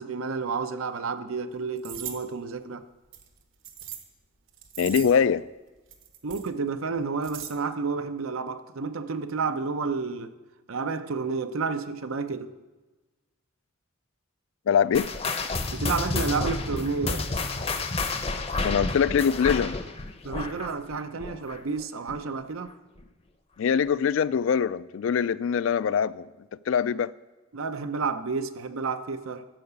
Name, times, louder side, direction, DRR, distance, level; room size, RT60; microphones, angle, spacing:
voice 1, 0.0-2.8 6.2-10.3 10.7-12.5 15.7-17.2 20.2-22.7 27.5-29.5, right 4 dB, 85° right, 0.7 m, -30 dB
sound 1, 1.8-2.2 3.1-4.0 4.5-5.2 5.9-6.5 7.0-7.5, right 10 dB, 65° right, 1.2 m, -39 dB
voice 2, 4.8-5.5 14.7-15.1 18.6-19.8 23.6-26.3 26.7-27.1, left 7 dB, 70° left, 0.3 m, -23 dB
sound 2, 14.9-21.8 22.1-22.4 23.0-23.1 23.9-24.0, left 3 dB, 30° left, 0.6 m, -30 dB
14.0 x 4.8 x 8.1 m
head